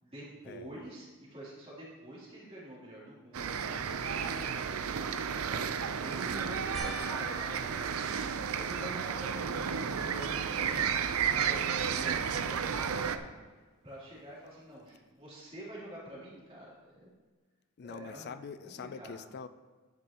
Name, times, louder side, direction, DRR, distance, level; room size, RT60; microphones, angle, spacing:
voice 1, 0.0-8.2 8.6-13.3 13.8-17.1 17.8-18.3 18.6-19.2, right 1 dB, 25° right, -8 dB, 3.0 m, -47 dB
sound 1, 3.3-13.2, right 7 dB, 75° right, 0.5 m, -32 dB
sound 2, 6.7-9.3 9.9-10.5 10.9-11.0 14.2-14.3, left 2 dB, ahead, 1.0 m, -48 dB
voice 2, 17.8-19.5, left 6 dB, 45° left, 12 dB, 0.4 m, -44 dB
10.5 x 9.5 x 2.9 m, 1.3 s
head